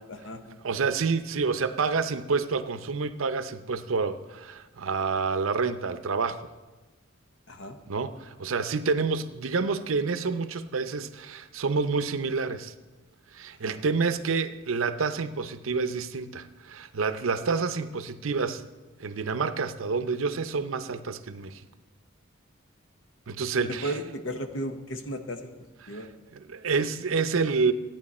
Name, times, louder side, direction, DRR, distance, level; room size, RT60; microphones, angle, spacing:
voice 1, 0.1-0.6 7.5-7.8 13.6-13.8 23.8-25.5 25.9-26.1, right 1 dB, 65° left, 7 dB, 1.0 m, -35 dB
voice 2, 0.6-6.5 7.9-12.7 13.3-18.7 19.0-21.6 23.3-24.0 25.8-27.7, right 4 dB, 85° right, 11 dB, 0.6 m, -28 dB
13.5 x 9.1 x 4.2 m, 1.2 s
head